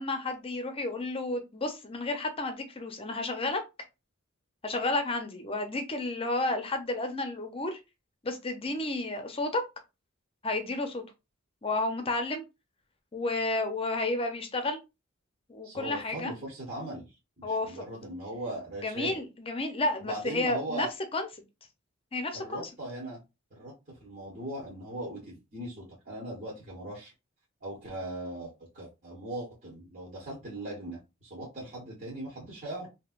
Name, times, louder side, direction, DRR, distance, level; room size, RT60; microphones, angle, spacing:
voice 1, 0.0-3.6 4.6-7.8 8.2-9.6 10.4-11.0 11.6-12.4 13.1-14.8 15.5-16.3 17.4-17.8 18.8-20.9 21.1-21.3 22.1-22.7, left 2 dB, 30° left, 0.6 m, -31 dB
voice 2, 15.6-19.2 20.0-20.9 22.3-23.2 23.5-27.1 27.6-32.9, right 1 dB, 40° right, 1.2 m, -39 dB
3.2 x 2.8 x 2.4 m
head